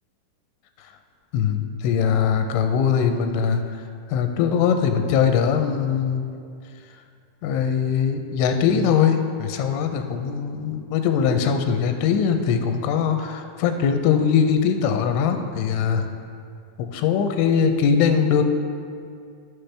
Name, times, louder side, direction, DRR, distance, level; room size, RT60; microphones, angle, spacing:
voice 1, 1.3-6.3 7.4-16.1 16.8-18.4, left 7 dB, 85° left, 6 dB, 3.0 m, -21 dB
14.5 x 6.0 x 3.3 m, 2.3 s
omnidirectional pair, 5.4 m